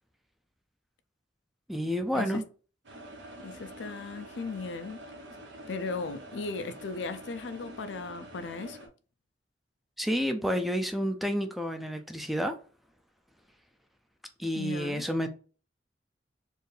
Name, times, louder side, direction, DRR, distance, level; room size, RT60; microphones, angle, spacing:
voice 1, 1.7-2.4 10.0-12.5 14.4-15.3, equal, ahead, 0.4 m, -30 dB
sound 1, 2.8-8.9, right 1 dB, 80° right, 0.9 m, -47 dB
voice 2, 3.4-5.0 5.7-8.9 14.5-15.0, left 4 dB, 70° left, 0.4 m, -37 dB
4.4 x 2.6 x 3.2 m
head